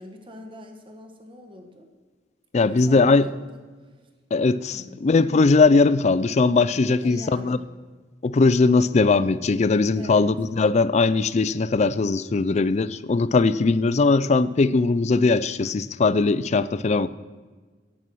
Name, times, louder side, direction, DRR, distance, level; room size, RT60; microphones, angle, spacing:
voice 1, 0.0-1.9 2.5-3.9 4.7-5.0 7.0-7.6 9.9-10.3, left 1 dB, 30° right, 4 dB, 1.4 m, -43 dB
voice 2, 2.5-3.3 4.3-7.6 8.2-17.1, left 3 dB, 40° left, 16 dB, 0.4 m, -20 dB
11.0 x 8.7 x 6.2 m, 1.4 s
head